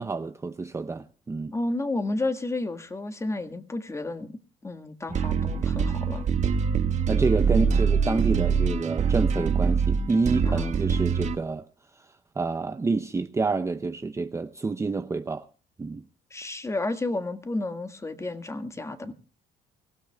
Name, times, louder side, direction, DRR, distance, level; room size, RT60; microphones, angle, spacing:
voice 1, 0.0-1.5 7.1-11.7 12.4-15.5 15.8-16.0, right 3 dB, 15° right, 0.6 m, -28 dB
voice 2, 1.5-4.3 4.6-6.2 7.5-7.7 10.5-10.8 16.3-19.1, left 2 dB, 15° left, 1.7 m, -31 dB
sound 1, 5.1-11.4, right 6 dB, 45° right, 1.6 m, -24 dB
24.5 x 16.5 x 2.2 m
cardioid pair, 110°, 17 cm